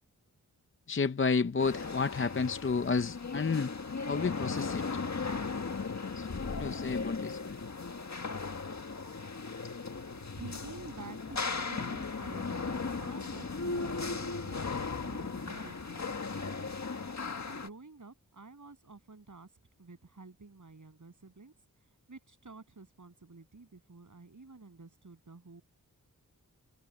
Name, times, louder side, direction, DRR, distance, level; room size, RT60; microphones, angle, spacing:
voice 1, 0.9-3.7 4.1-5.0 6.2-7.6, left 5 dB, 35° left, 0.6 m, -31 dB
sound 1, 1.6-17.7, left 4 dB, 50° left, 1.7 m, -37 dB
voice 2, 10.1-16.8 17.4-19.5 19.8-21.5 22.1-25.6, right 3 dB, 60° right, 7.8 m, -50 dB
wide cardioid pair, 60°, 35 cm